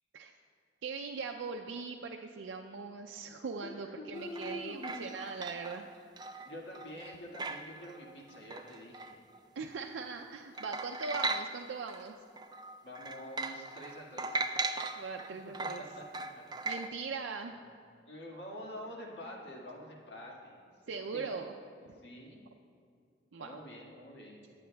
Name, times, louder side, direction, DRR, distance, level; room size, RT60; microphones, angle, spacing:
voice 1, 0.8-5.9 9.6-12.2 15.0-15.8 16.6-17.5 20.9-21.5 23.3-23.6, right 4 dB, 85° right, 3 dB, 0.4 m, -40 dB
voice 2, 3.6-5.1 6.4-9.1 12.8-14.6 15.8-16.0 18.1-21.3 21.8-22.4 23.4-24.4, equal, 65° left, -3 dB, 1.8 m, -46 dB
sound 1, 4.1-9.9 10.2-10.3 10.5-12.0 12.4-16.9, right 3 dB, 25° right, 0.3 m, -39 dB
21.5 x 8.5 x 2.3 m, 2.3 s
head